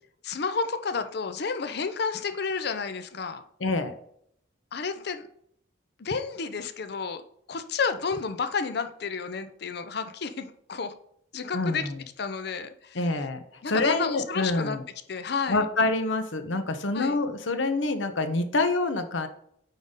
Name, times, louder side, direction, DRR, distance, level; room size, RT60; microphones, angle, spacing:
voice 1, 0.2-3.4 4.7-5.3 6.0-7.2 7.5-10.9 11.3-11.9 12.2-13.3 13.6-14.8 15.1-15.7 16.9-17.2, left 5 dB, 55° left, 9 dB, 0.6 m, -31 dB
voice 2, 3.6-3.9 11.5-12.0 12.9-13.4 13.7-14.8 15.5-19.3, left 2 dB, 80° left, 8 dB, 0.9 m, -26 dB
9.1 x 4.0 x 3.7 m, 0.68 s
head